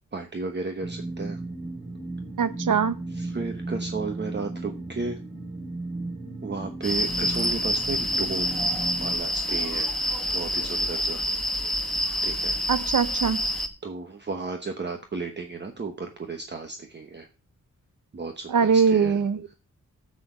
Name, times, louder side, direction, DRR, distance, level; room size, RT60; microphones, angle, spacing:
voice 1, 0.1-1.4 3.1-5.2 6.4-8.7 9.0-9.9 10.3-11.2 12.2-12.6 13.8-17.3 18.1-19.2, right 4 dB, 35° right, 1.0 m, -34 dB
sound 1, 0.8-9.2, right 2 dB, 55° right, 4.7 m, -35 dB
voice 2, 2.4-3.0 12.7-13.4 18.5-19.4, right 6 dB, 75° right, 0.9 m, -21 dB
sound 2, 6.8-13.7, equal, ahead, 1.2 m, -27 dB
7.6 x 6.3 x 7.2 m
wide cardioid pair, 165°, 31 cm